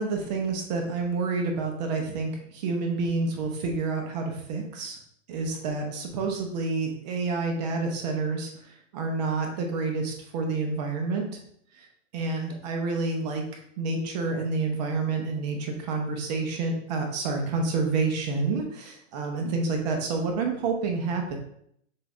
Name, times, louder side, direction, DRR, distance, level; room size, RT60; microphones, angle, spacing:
voice 1, 0.0-5.0 5.3-11.3 11.7-11.9 12.1-21.3, right 3 dB, 35° right, 2 dB, 0.8 m, -29 dB
6.6 x 2.5 x 3.2 m, 0.69 s
hypercardioid pair, 160°, 38 cm